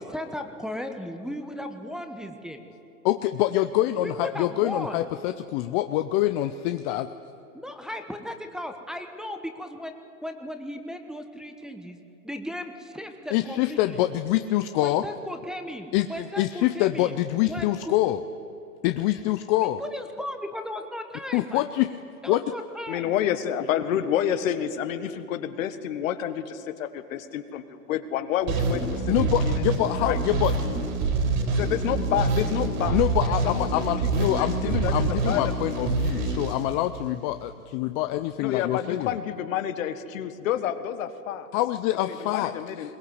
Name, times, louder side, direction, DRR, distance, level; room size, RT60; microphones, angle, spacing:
voice 1, 0.0-2.7 4.0-5.0 7.5-9.9 10.2-12.0 12.2-14.0 14.8-17.2 17.5-17.9 19.6-21.6 22.2-23.1, left 1 dB, ahead, 5 dB, 1.1 m, -36 dB
voice 2, 3.0-7.1 13.3-15.0 15.9-18.2 18.8-19.8 21.3-22.0 22.2-22.4 29.1-30.9 32.9-39.2 41.5-42.5, left 14 dB, 30° left, 10 dB, 0.6 m, -25 dB
voice 3, 22.9-29.6 30.0-30.2 31.0-31.1 31.4-33.0 33.3-33.7 34.0-34.1 34.4-35.7 38.4-41.5 42.1-43.0, left 10 dB, 60° left, 11 dB, 1.6 m, -29 dB
sound 1, 28.5-37.3, right 3 dB, 55° right, 4.6 m, -26 dB
22.0 x 18.5 x 8.1 m, 2.8 s
hypercardioid pair, 120°, 46 cm